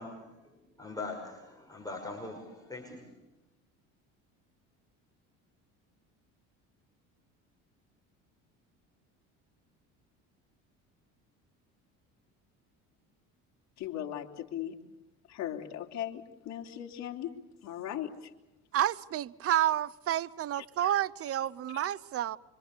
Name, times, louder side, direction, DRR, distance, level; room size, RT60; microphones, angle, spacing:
voice 1, 0.0-3.0, left 3 dB, 10° left, 5.9 m, -42 dB
voice 2, 13.8-14.7 15.3-17.3 17.6-18.3 20.5-20.9, left 11 dB, 55° left, 3.5 m, -38 dB
voice 3, 18.7-22.4, right 12 dB, 45° right, 0.8 m, -30 dB
25.5 x 25.5 x 6.9 m
cardioid pair, 110°, 32 cm